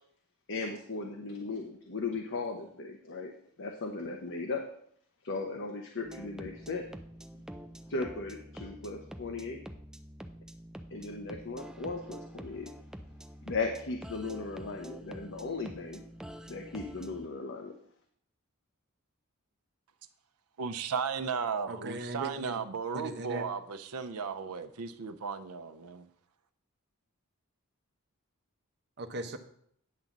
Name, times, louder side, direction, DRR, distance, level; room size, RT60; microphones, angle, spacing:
voice 1, 0.5-3.3 3.6-4.7 5.2-6.9 7.9-9.6 10.9-12.7 13.5-16.0 16.5-17.7, left 3 dB, 60° left, 0.9 m, -37 dB
sound 1, 6.0-17.3, equal, 5° right, 0.5 m, -47 dB
voice 2, 20.6-26.1, right 6 dB, 90° right, 0.6 m, -35 dB
voice 3, 21.7-22.6 22.9-23.4 29.0-29.4, right 2 dB, 50° right, 0.9 m, -38 dB
9.6 x 3.9 x 7.2 m
head